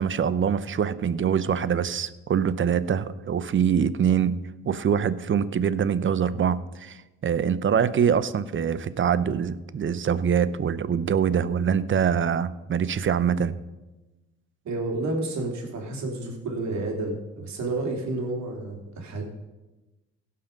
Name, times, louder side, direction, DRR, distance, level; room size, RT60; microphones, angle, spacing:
voice 1, 0.0-4.4 4.6-13.5, right 7 dB, 40° right, 16 dB, 0.8 m, -24 dB
voice 2, 14.6-19.2, right 2 dB, 65° right, 2 dB, 3.0 m, -30 dB
16.5 x 5.7 x 5.3 m, 1.1 s
supercardioid pair, 65°, 30 cm